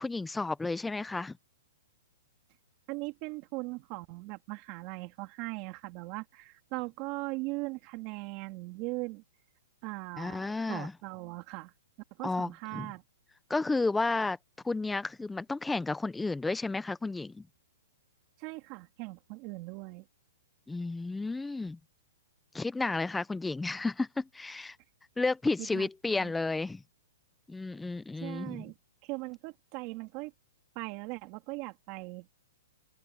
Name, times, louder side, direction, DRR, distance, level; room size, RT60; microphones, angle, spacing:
voice 1, 0.0-1.4 10.2-10.9 12.2-12.9 13.5-14.4 14.6-17.5 20.7-21.8 22.5-24.8 25.2-26.8 27.5-28.7, left 3 dB, 5° left, 0.6 m, -32 dB
voice 2, 2.9-9.2 9.8-11.7 12.2-13.0 18.4-20.1 25.6-26.3 28.2-28.7 29.0-30.3 30.7-32.3, right 24 dB, 30° right, 2.9 m, -39 dB
hypercardioid pair, 165°, 0 cm